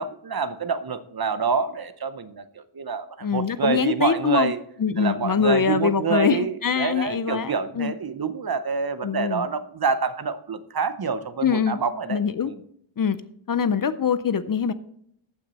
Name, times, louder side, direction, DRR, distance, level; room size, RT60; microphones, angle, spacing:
voice 1, 0.0-4.6 5.0-12.6, right 5 dB, 50° right, 12 dB, 0.7 m, -27 dB
voice 2, 3.2-4.5 4.8-7.9 9.0-9.5 11.4-11.8 12.1-12.5 13.0-13.2 13.5-14.7, left 6 dB, 45° left, 14 dB, 0.5 m, -23 dB
14.5 x 6.1 x 4.1 m, 0.69 s
wide cardioid pair, 110°, 49 cm